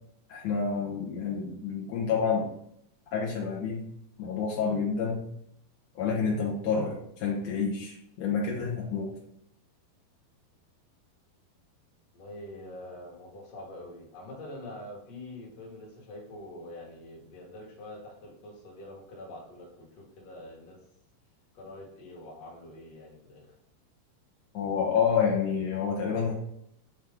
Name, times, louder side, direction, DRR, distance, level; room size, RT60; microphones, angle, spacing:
voice 1, 0.3-2.5 3.1-3.8 4.2-5.2 5.9-9.1 24.5-26.3, left 6 dB, 70° left, -3 dB, 1.6 m, -28 dB
voice 2, 12.1-20.8 21.5-23.5, left 1 dB, 55° left, -2 dB, 2.1 m, -45 dB
8.1 x 4.5 x 3.6 m, 0.74 s
omnidirectional pair, 4.7 m